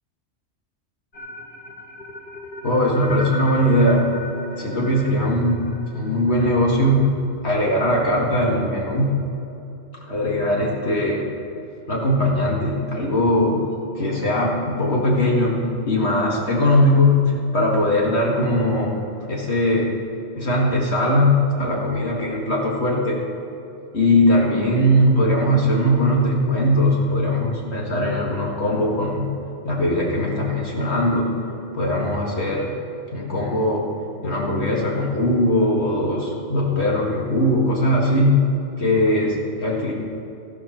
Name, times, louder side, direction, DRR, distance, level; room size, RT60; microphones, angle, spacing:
sound 1, 1.1-7.3, left 1 dB, 50° left, 1.2 m, -38 dB
voice 1, 2.6-4.1 4.6-5.7 5.9-7.1 7.4-9.2 10.0-11.3 11.9-13.7 14.0-17.2 17.5-19.0 19.2-19.9 20.4-23.2 23.9-29.3 29.6-31.4 31.7-32.8 33.1-33.9 34.2-38.4 38.8-39.9, left 1 dB, 65° left, -3 dB, 2.2 m, -20 dB
14.0 x 13.5 x 4.4 m, 2.9 s
omnidirectional pair, 1.2 m